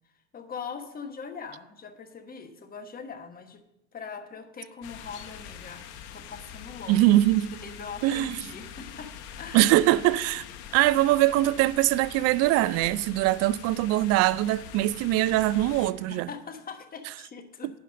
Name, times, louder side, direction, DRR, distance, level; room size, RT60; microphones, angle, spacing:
voice 1, 0.3-3.6 3.9-5.8 6.1-7.0 7.5-9.7 16.0-17.7, left 5 dB, 25° left, 1.2 m, -41 dB
sound 1, 4.8-15.9, left 8 dB, 70° left, 1.1 m, -44 dB
voice 2, 6.9-7.5 8.0-8.4 9.5-10.4 10.7-16.3, right 15 dB, 45° right, 0.4 m, -22 dB
10.0 x 5.5 x 6.2 m
hypercardioid pair, 95°, 36 cm